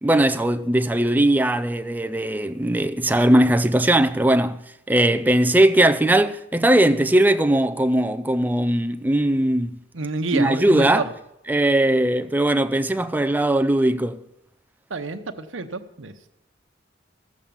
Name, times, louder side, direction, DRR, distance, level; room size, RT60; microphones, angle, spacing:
voice 1, 0.0-4.6 4.9-9.8 10.3-11.1 11.5-14.2, right 1 dB, 10° right, 0.4 m, -19 dB
voice 2, 9.9-11.0 14.9-16.3, right 3 dB, 85° right, 0.9 m, -29 dB
15.5 x 7.4 x 7.0 m
head